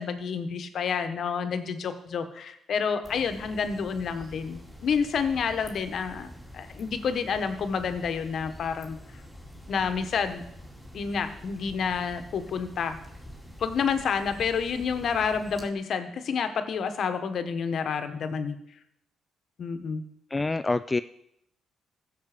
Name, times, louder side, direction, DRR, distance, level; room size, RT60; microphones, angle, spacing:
voice 1, 0.0-9.0 9.7-10.4 10.9-13.0 13.6-18.6 19.6-20.0, left 6 dB, 60° left, 8 dB, 1.2 m, -29 dB
sound 1, 3.0-15.7, equal, ahead, 2.6 m, -46 dB
voice 2, 20.3-21.0, left 3 dB, 20° left, 11 dB, 0.3 m, -26 dB
15.0 x 6.7 x 5.1 m, 0.76 s
cardioid pair, 90°, 0 cm